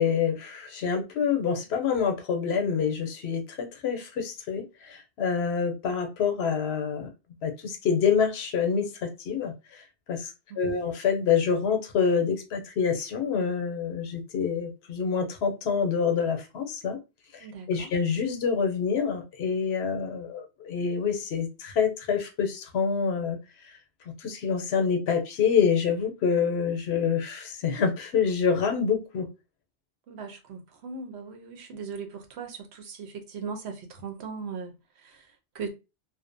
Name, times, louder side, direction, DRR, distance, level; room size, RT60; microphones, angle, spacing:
voice 1, 0.0-7.1 7.4-9.5 10.1-17.0 17.3-23.4 24.2-29.3, left 6 dB, 80° left, 0.9 m, -27 dB
voice 2, 10.5-10.9 17.4-17.9 30.1-35.7, right 5 dB, 85° right, 0.9 m, -39 dB
2.6 x 2.0 x 2.5 m
omnidirectional pair, 1.1 m